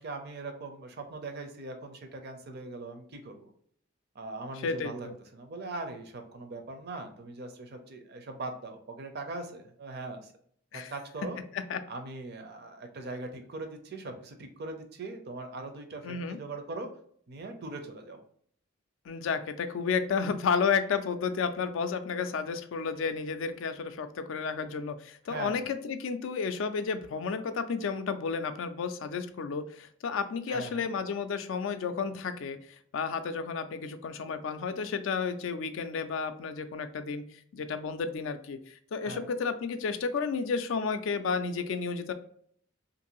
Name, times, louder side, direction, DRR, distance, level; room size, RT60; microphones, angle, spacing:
voice 1, 0.0-3.5 4.1-10.3 10.7-11.4 11.9-16.9 17.3-18.2 25.3-25.7 30.5-30.9 39.0-39.3, right 2 dB, 50° right, 6 dB, 0.5 m, -40 dB
voice 2, 4.6-5.1 10.7-10.9 11.7-11.8 16.0-16.4 19.1-37.2 37.5-42.1, left 5 dB, 70° left, 10 dB, 0.3 m, -32 dB
2.6 x 2.6 x 2.9 m, 0.62 s
head